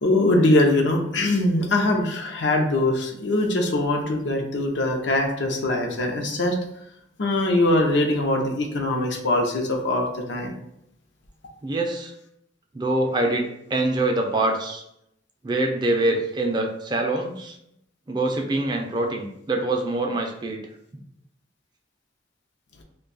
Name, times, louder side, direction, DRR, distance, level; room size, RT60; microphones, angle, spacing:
voice 1, 0.0-6.6 7.2-10.5, left 1 dB, 80° left, 2 dB, 0.6 m, -22 dB
voice 2, 11.6-12.1 12.7-14.8 15.4-17.6 18.1-20.6, right 2 dB, 25° right, 2 dB, 0.4 m, -24 dB
2.6 x 2.2 x 3.9 m, 0.77 s
head